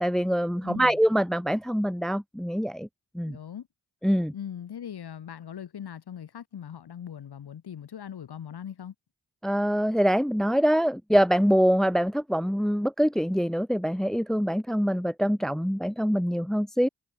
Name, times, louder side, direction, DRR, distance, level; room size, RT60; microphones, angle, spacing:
voice 1, 0.0-2.9 3.1-3.4 4.0-4.3 9.4-16.9, equal, ahead, 0.8 m, -24 dB
voice 2, 0.6-1.0 3.3-3.7 4.3-8.9, left 9 dB, 90° left, 4.0 m, -40 dB
cardioid pair, 40°, 38 cm